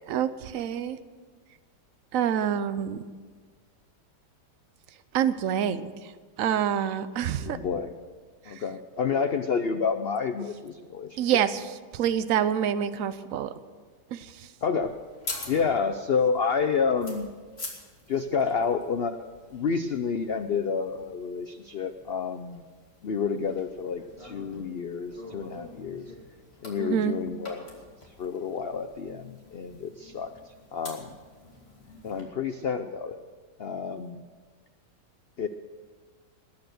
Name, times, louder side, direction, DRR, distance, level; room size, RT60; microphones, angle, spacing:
voice 1, 0.1-1.0 2.1-3.1 5.1-5.9 6.4-7.6 11.2-11.6 11.9-13.5 14.1-14.3 26.8-27.1, right 9 dB, 60° right, 12 dB, 1.0 m, -26 dB
voice 2, 7.4-7.9 8.5-11.4 14.6-15.0 15.5-17.4 18.1-19.2 19.5-22.6 23.0-26.1 26.6-27.7 28.2-30.3 30.7-31.2 32.0-33.2 33.6-34.2 35.4-35.5, left 5 dB, 85° left, 9 dB, 0.5 m, -29 dB
sound 1, 14.8-32.2, left 2 dB, 35° left, 3.0 m, -46 dB
20.0 x 9.2 x 6.4 m, 1.5 s
omnidirectional pair, 1.9 m